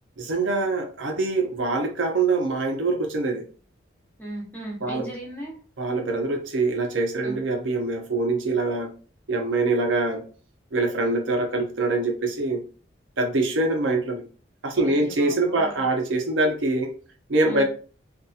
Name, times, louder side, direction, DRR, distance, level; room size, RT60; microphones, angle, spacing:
voice 1, 0.2-3.4 4.8-5.1 5.8-8.9 9.3-10.2 10.7-12.6 13.2-14.2 14.6-16.9 17.3-17.6, right 2 dB, 85° right, 0.7 m, -24 dB
voice 2, 4.2-5.6 7.2-7.4 14.8-15.8 17.4-17.6, right 1 dB, 10° left, 0.8 m, -37 dB
2.7 x 2.5 x 2.4 m
head